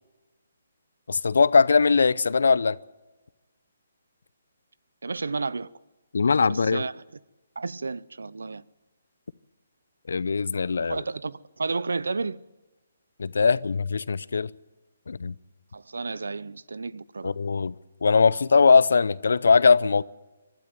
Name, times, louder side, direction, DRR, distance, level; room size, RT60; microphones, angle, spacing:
voice 1, 1.1-2.8 6.1-6.8 10.1-11.0 13.2-14.5 15.1-15.3 17.2-17.7 18.0-20.0, left 5 dB, 70° left, 0.6 m, -20 dB
voice 2, 5.0-5.7 6.5-7.0 7.6-8.6 10.9-12.4 15.7-17.4, right 4 dB, 75° right, 0.6 m, -32 dB
24.0 x 12.5 x 9.2 m
figure-of-eight pair, 140°, 0 cm